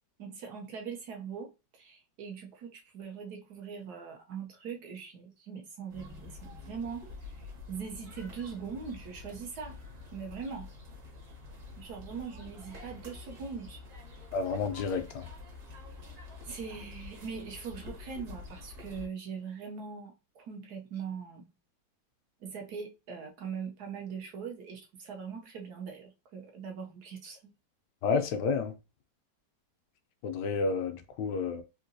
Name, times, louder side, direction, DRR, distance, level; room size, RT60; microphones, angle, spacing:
voice 1, 0.2-9.8 10.1-10.7 11.8-13.8 16.5-21.5 22.4-27.4, right 6 dB, 65° right, 1.3 m, -41 dB
sound 1, 5.9-19.1, left 3 dB, 50° right, 1.4 m, -47 dB
voice 2, 14.3-15.3 28.0-28.7 30.2-31.6, left 4 dB, 75° left, 1.2 m, -30 dB
3.7 x 2.7 x 2.6 m
omnidirectional pair, 1.9 m